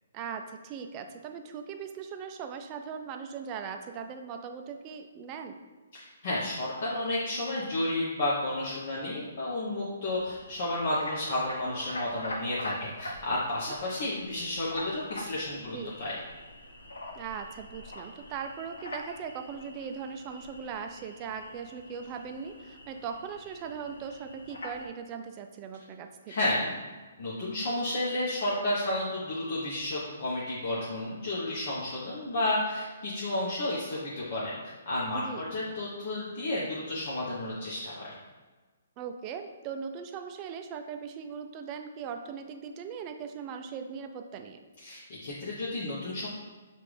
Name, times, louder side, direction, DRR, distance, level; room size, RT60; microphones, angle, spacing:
voice 1, 0.1-5.6 15.7-16.0 17.2-26.5 35.1-35.5 39.0-44.6, right 6 dB, 30° right, 6 dB, 0.4 m, -39 dB
voice 2, 6.0-16.2 26.3-26.8 27.2-38.1 44.8-46.3, left 1 dB, 55° left, -7 dB, 1.0 m, -32 dB
sound 1, 10.0-24.9, left 1 dB, 85° left, 0.8 m, -44 dB
5.6 x 2.5 x 3.3 m, 1.3 s
hypercardioid pair, 145°, 0 cm